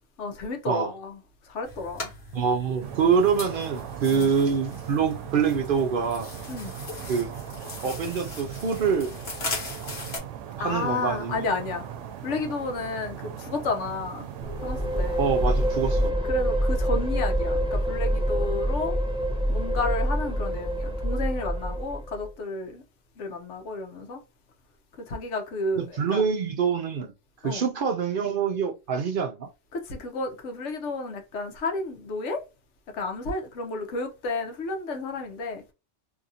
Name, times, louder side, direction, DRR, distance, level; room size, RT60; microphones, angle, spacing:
voice 1, 0.2-1.2 1.4-2.1 3.0-3.1 4.0-4.3 6.5-6.7 10.6-11.9 12.2-14.3 14.6-15.3 16.3-18.9 19.5-22.8 23.2-24.2 25.0-26.2 27.4-27.7 29.7-32.4 32.9-35.6, left 3 dB, 80° left, 1.1 m, -32 dB
sound 1, 1.6-10.2, left 2 dB, 60° left, 1.4 m, -39 dB
voice 2, 2.3-6.3 7.1-7.3 7.8-9.1 10.6-11.5 15.2-16.1 25.8-27.1 27.4-29.5, right 6 dB, 60° right, 0.6 m, -25 dB
sound 2, 2.8-16.1, right 9 dB, 85° right, 0.9 m, -39 dB
sound 3, 14.4-22.3, equal, 10° right, 0.3 m, -26 dB
2.8 x 2.5 x 2.6 m
omnidirectional pair, 1.2 m